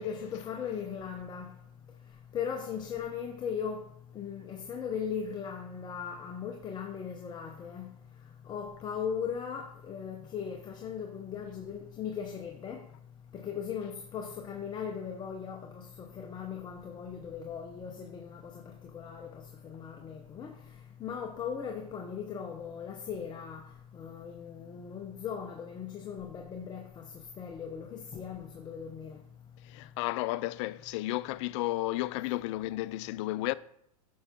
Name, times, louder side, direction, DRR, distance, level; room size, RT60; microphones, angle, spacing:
voice 1, 0.0-1.5 2.3-3.8 4.1-7.9 8.5-12.8 13.4-15.8 16.1-18.4 18.9-19.3 19.6-20.5 21.0-23.6 23.9-26.8 27.4-29.2, left 7 dB, 20° left, 0.8 m, -38 dB
voice 2, 29.6-33.5, left 17 dB, 50° left, 0.4 m, -33 dB
8.6 x 5.7 x 3.6 m
hypercardioid pair, 130°, 20 cm